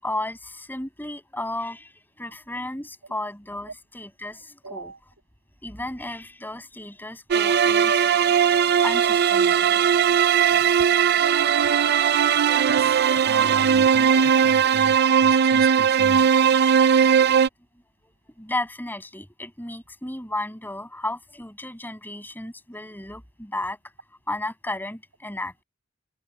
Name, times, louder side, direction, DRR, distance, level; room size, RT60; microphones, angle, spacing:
voice 1, 0.0-4.9 5.6-8.0 8.5-9.8 10.8-11.1 12.6-13.1 18.0-23.8 24.3-25.6, left 1 dB, 10° left, 7.1 m, -34 dB
voice 2, 4.6-5.0 9.7-9.9 10.5-10.7 12.6-16.3, right 2 dB, 85° right, 6.5 m, -36 dB
sound 1, 7.3-17.5, right 7 dB, 55° right, 0.5 m, -19 dB
head